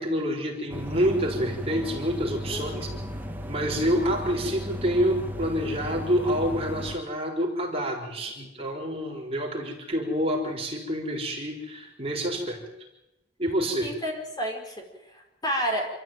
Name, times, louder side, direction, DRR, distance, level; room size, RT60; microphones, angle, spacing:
voice 1, 0.0-2.9 3.5-12.6 13.4-13.9, equal, 30° right, 0 dB, 4.4 m, -27 dB
sound 1, 0.7-7.0, equal, 10° right, 1.8 m, -35 dB
voice 2, 2.5-2.9 8.4-8.7 12.3-12.7 13.8-14.8 15.1-15.9, equal, 20° left, 1 dB, 5.0 m, -31 dB
27.5 x 14.0 x 9.3 m, 0.94 s
head